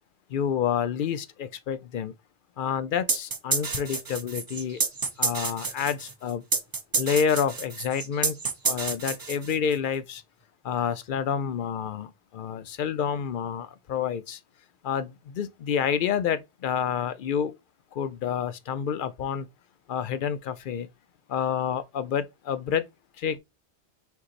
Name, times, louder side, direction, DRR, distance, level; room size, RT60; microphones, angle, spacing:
voice 1, 0.3-2.1 2.6-4.8 5.2-6.4 7.0-8.4 8.6-10.2 10.6-14.4 14.8-17.5 17.9-19.5 19.9-20.9 21.3-22.9 23.2-23.4, left 8 dB, 60° left, 0.6 m, -28 dB
sound 1, 3.1-9.8, right 4 dB, 35° right, 0.3 m, -29 dB
4.5 x 3.9 x 2.4 m
omnidirectional pair, 1.1 m